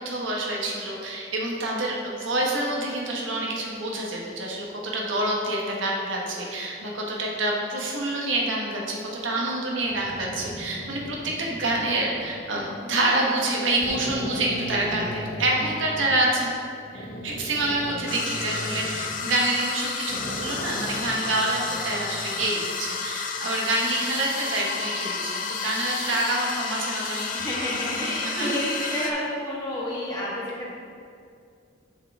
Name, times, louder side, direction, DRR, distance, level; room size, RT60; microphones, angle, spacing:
voice 1, 0.0-16.5 16.9-27.4 28.2-28.5, right 2 dB, 90° right, -2 dB, 1.2 m, -27 dB
sound 1, 9.8-12.7 13.3-13.4 13.8-16.1 16.9-19.8 20.1-22.4, equal, 60° left, 1.0 m, -37 dB
sound 2, 18.1-29.1, left 5 dB, 45° left, 0.6 m, -31 dB
voice 2, 27.3-30.7, left 1 dB, 20° left, -6 dB, 1.6 m, -30 dB
6.9 x 6.2 x 3.6 m, 2.4 s
head